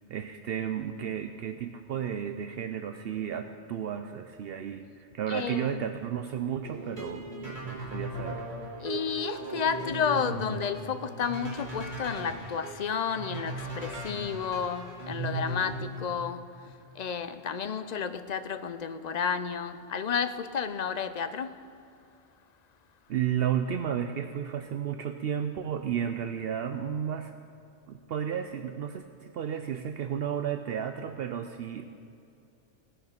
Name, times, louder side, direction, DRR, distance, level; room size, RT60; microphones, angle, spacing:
voice 1, 0.1-8.4 23.1-27.3 27.9-31.8, right 9 dB, 65° right, 0.7 m, -33 dB
voice 2, 5.3-5.8 8.8-16.5 17.0-21.5, left 7 dB, 50° left, 0.5 m, -31 dB
sound 1, 6.6-16.0, right 2 dB, 45° right, 3.3 m, -37 dB
18.0 x 6.8 x 5.8 m
omnidirectional pair, 1.1 m